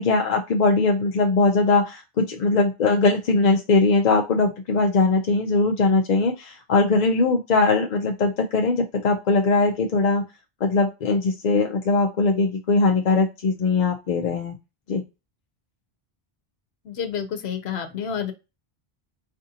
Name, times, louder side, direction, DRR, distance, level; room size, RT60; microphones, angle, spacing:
voice 1, 0.0-10.2 10.6-14.6 14.9-15.0, left 3 dB, 55° left, 3 dB, 0.5 m, -20 dB
voice 2, 16.9-18.3, left 8 dB, 90° left, 7 dB, 0.9 m, -29 dB
4.3 x 2.5 x 2.7 m, 0.26 s
omnidirectional pair, 1.0 m